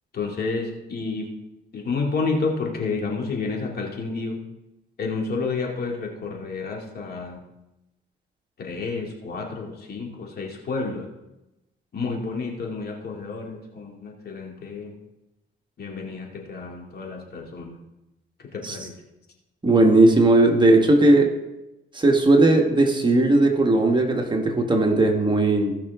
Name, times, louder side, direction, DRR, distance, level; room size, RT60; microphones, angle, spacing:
voice 1, 0.1-1.3 1.7-4.4 5.0-7.4 8.6-11.1 11.9-14.9 15.8-17.8 18.5-18.9, left 4 dB, 55° left, 0 dB, 2.5 m, -30 dB
voice 2, 19.6-21.3 21.9-25.8, right 2 dB, 25° right, 2 dB, 1.4 m, -17 dB
17.0 x 5.8 x 3.6 m, 0.95 s
cardioid pair, 90°, 20 cm